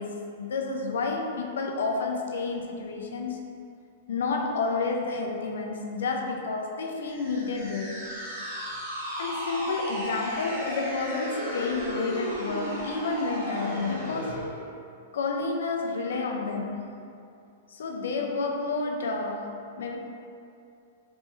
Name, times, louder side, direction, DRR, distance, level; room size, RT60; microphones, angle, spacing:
voice 1, 0.0-3.4 4.1-8.1 9.2-14.4 15.1-17.0 17.7-20.0, left 3 dB, 90° left, 2 dB, 0.5 m, -30 dB
sound 1, 7.1-14.5, equal, 20° right, 1.4 m, -34 dB
3.4 x 3.1 x 3.0 m, 2.5 s
supercardioid pair, 175°, 0 cm